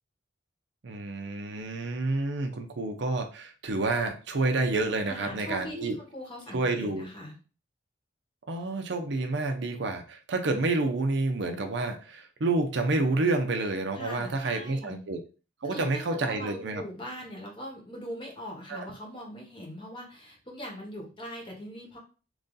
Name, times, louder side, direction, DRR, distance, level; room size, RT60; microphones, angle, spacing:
voice 1, 0.8-6.0 6.5-7.1 8.5-15.2 15.6-16.8 18.7-18.9, right 2 dB, 65° right, 5 dB, 0.6 m, -29 dB
voice 2, 5.1-7.4 13.9-15.0 15.6-22.0, equal, 25° left, -1 dB, 1.0 m, -41 dB
3.1 x 2.6 x 3.8 m, 0.35 s
head